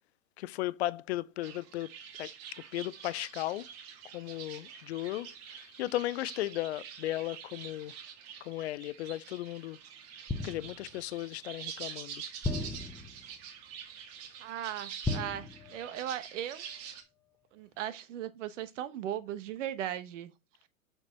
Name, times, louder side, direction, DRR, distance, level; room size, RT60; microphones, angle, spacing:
voice 1, 0.4-1.9 2.2-2.3 2.7-3.7 4.1-7.9 8.4-9.8 10.4-12.2, left 15 dB, 50° left, 0.6 m, -36 dB
sound 1, 1.4-17.0, right 8 dB, 35° right, 1.8 m, -47 dB
sound 2, 10.3-11.0 12.4-13.4 15.0-16.1 16.4-16.7, left 2 dB, 5° left, 0.7 m, -36 dB
voice 2, 14.4-16.6 17.5-20.3, right 11 dB, 60° right, 1.3 m, -37 dB
6.5 x 6.1 x 4.4 m
hypercardioid pair, 125°, 42 cm